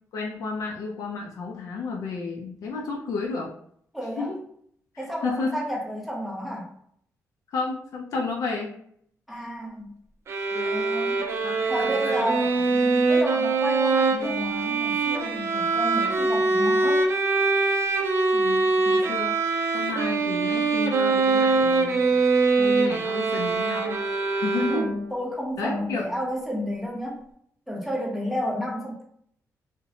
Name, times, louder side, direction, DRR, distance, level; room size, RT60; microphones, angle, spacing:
voice 1, 0.1-3.5 4.2-4.4 4.9-5.6 7.5-8.7 10.5-10.8 11.4-12.5 15.4-15.7 18.3-19.3 19.7-22.0 22.6-24.0 24.3-24.8 25.6-26.0, left 4 dB, 70° left, -1 dB, 0.4 m, -32 dB
voice 2, 3.9-4.3 5.0-6.7 9.3-10.0 10.6-11.2 11.7-17.0 24.6-27.2 27.7-29.0, equal, ahead, -2 dB, 0.7 m, -31 dB
sound 1, 10.3-25.2, right 3 dB, 45° right, 0.4 m, -23 dB
2.7 x 2.1 x 2.7 m, 0.66 s
cardioid pair, 125°, 6 cm